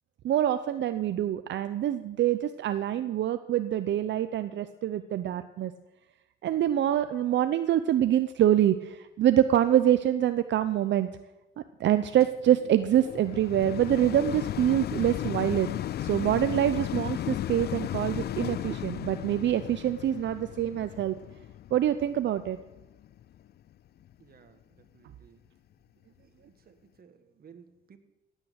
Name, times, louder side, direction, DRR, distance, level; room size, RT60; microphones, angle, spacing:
voice 1, 0.2-5.7 6.4-11.1 11.8-15.7 16.0-21.2 21.7-22.6, right 11 dB, 65° right, 11 dB, 0.7 m, -25 dB
sound 1, 12.2-23.5 24.1-24.2, left 12 dB, 55° left, 0.4 m, -35 dB
voice 2, 24.2-25.4 26.2-28.0, right 6 dB, 50° right, 8 dB, 1.8 m, -57 dB
16.5 x 8.9 x 7.7 m, 1.0 s
cardioid pair, 90°, 20 cm